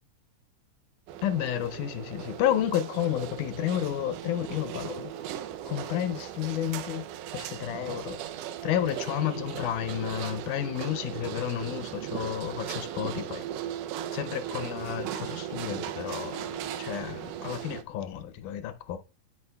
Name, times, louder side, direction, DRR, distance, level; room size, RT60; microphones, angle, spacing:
sound 1, 1.1-17.8, right 10 dB, 80° right, 2.0 m, -37 dB
voice 1, 1.2-5.1 5.7-7.0 7.3-8.2 8.6-13.4 14.1-19.0, left 11 dB, 80° left, 2.1 m, -31 dB
12.5 x 5.0 x 2.3 m
omnidirectional pair, 3.8 m